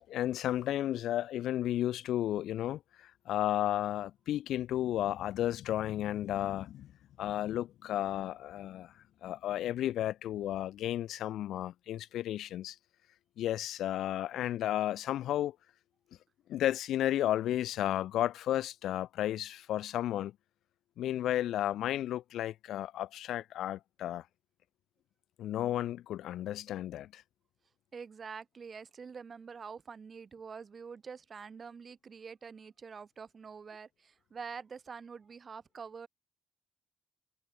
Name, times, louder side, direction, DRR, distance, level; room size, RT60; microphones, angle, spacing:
voice 1, 0.0-6.9 7.2-8.9 9.2-12.8 13.4-15.6 16.5-20.3 21.0-24.2 25.4-27.2, left 12 dB, 80° left, 0.6 m, -33 dB
voice 2, 27.9-36.1, right 5 dB, 40° right, 2.5 m, -46 dB
cardioid pair, 90°, 0 cm